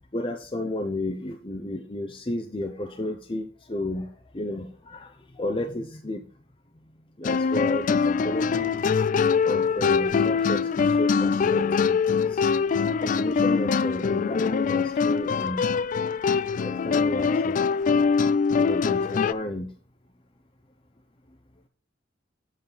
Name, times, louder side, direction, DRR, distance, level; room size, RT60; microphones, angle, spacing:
voice 1, 0.1-4.1 4.3-5.1 5.4-6.2 7.2-8.8 9.5-12.7 13.0-15.8 16.6-17.6 18.6-19.7, left 1 dB, 25° left, 4 dB, 0.8 m, -32 dB
sound 1, 7.2-19.3, left 5 dB, 45° left, 0.3 m, -23 dB
8.9 x 8.0 x 4.0 m, 0.40 s
head